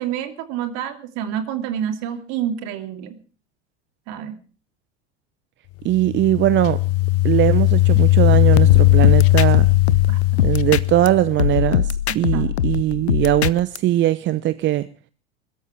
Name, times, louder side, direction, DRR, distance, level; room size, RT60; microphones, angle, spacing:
voice 1, 0.0-3.2 4.1-4.3 10.1-10.5 12.3-12.5, right 9 dB, 55° right, 2.8 m, -28 dB
voice 2, 5.8-6.8 7.2-9.7 10.4-14.9, right 14 dB, 35° right, 0.8 m, -20 dB
sound 1, 5.9-11.6, left 17 dB, 45° left, 0.7 m, -17 dB
sound 2, 8.7-11.1 11.4-13.8, left 9 dB, 75° left, 0.8 m, -21 dB
21.5 x 13.0 x 4.6 m
figure-of-eight pair, 75°, 33 cm